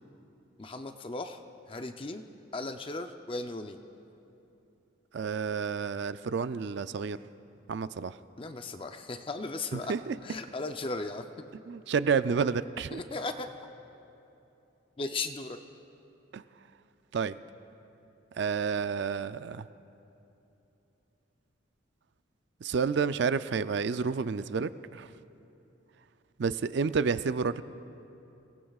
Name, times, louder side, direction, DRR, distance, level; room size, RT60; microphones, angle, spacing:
voice 1, 0.6-1.4 1.7-2.2 2.5-3.8 8.4-9.9 10.2-11.5 12.9-13.6 15.0-15.6, left 3 dB, 25° left, 6 dB, 0.5 m, -36 dB
voice 2, 5.1-7.2 7.7-8.2 9.7-10.2 11.7-13.0 16.3-16.4 17.1-17.4 18.4-19.7 22.6-25.1 26.4-27.6, right 5 dB, 55° right, 13 dB, 0.4 m, -30 dB
28.5 x 18.5 x 2.4 m, 2.9 s
head